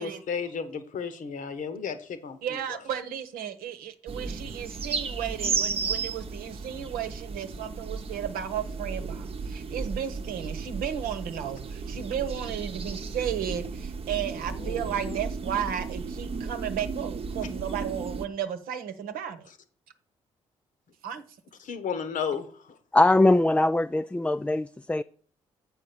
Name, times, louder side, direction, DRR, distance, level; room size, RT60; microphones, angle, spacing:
voice 1, 0.0-2.4 14.6-15.2 21.6-22.5, left 6 dB, 60° left, 1.1 m, -33 dB
voice 2, 2.4-19.5 21.0-21.2, right 9 dB, 70° right, 1.0 m, -34 dB
sound 1, 4.1-18.3, right 4 dB, 40° right, 0.9 m, -34 dB
voice 3, 22.9-25.0, left 2 dB, 10° left, 0.3 m, -21 dB
7.4 x 4.7 x 6.9 m
hypercardioid pair, 40°, 16 cm